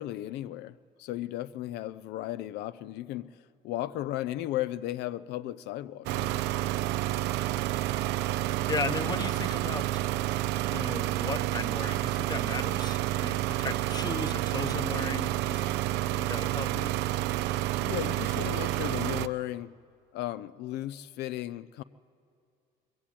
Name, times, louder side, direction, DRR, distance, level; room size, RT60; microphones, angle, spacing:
voice 1, 0.0-3.3 3.6-6.4 17.7-19.7 20.1-21.8, left 14 dB, 80° left, 14 dB, 0.5 m, -35 dB
sound 1, 6.1-19.3, right 15 dB, 90° right, 0.5 m, -29 dB
voice 2, 8.7-9.9 10.7-15.6 16.2-16.9, left 4 dB, 25° left, 12 dB, 0.8 m, -36 dB
21.0 x 15.0 x 8.6 m, 2.5 s
cardioid pair, 110°, 17 cm